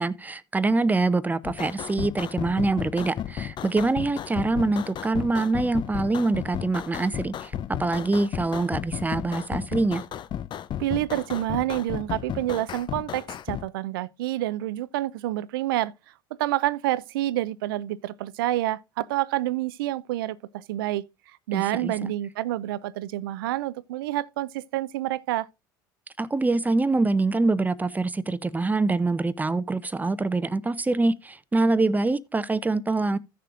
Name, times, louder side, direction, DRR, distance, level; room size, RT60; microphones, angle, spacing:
voice 1, 0.0-7.5 7.8-10.0 21.5-22.1 26.2-33.2, right 3 dB, 15° right, 0.6 m, -25 dB
sound 1, 1.4-13.7, left 10 dB, 40° left, 0.6 m, -34 dB
voice 2, 10.8-15.9 16.4-21.0 21.5-25.5, right 15 dB, 75° right, 0.4 m, -28 dB
15.5 x 6.7 x 2.5 m
hypercardioid pair, 70°, 12 cm